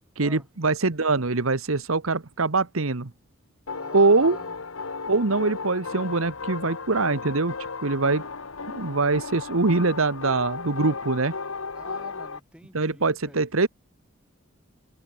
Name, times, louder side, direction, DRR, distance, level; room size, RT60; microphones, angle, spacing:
voice 1, 0.2-3.1 3.9-4.4 5.1-7.5 7.8-8.2 8.7-11.3 12.7-13.7, right 3 dB, 80° right, 1.3 m, -23 dB
sound 1, 3.7-12.4, left 4 dB, 80° left, 1.5 m, -35 dB
voice 2, 3.7-4.6 11.7-13.5, right 1 dB, 5° right, 3.9 m, -47 dB
open air
head